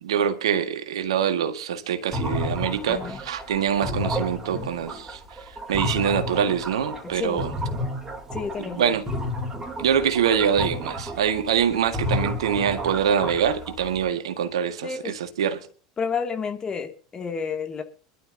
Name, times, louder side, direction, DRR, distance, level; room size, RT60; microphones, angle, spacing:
voice 1, 0.0-5.2 5.7-7.5 8.6-9.0 9.8-15.7, right 8 dB, 75° right, 1.8 m, -24 dB
sound 1, 2.1-8.8 9.1-14.0, left 1 dB, 15° right, 4.3 m, -31 dB
voice 2, 2.9-3.2 7.1-7.4 8.3-9.0 14.8-15.2 16.0-17.8, left 5 dB, 25° left, 2.6 m, -30 dB
24.5 x 12.0 x 2.8 m
hypercardioid pair, 85°, 3 cm